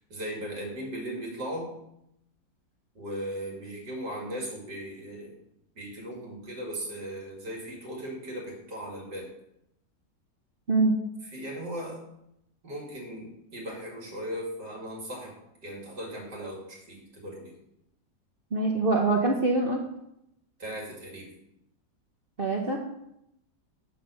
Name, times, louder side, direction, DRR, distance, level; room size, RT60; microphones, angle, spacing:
voice 1, 0.1-1.7 2.9-5.3 5.7-9.3 11.2-12.0 12.6-15.3 15.6-17.5 20.6-21.3, equal, 65° right, -2 dB, 3.2 m, -37 dB
voice 2, 18.5-19.8 22.4-22.8, right 3 dB, 40° right, 0 dB, 0.9 m, -24 dB
7.9 x 6.1 x 6.7 m, 0.80 s
omnidirectional pair, 1.9 m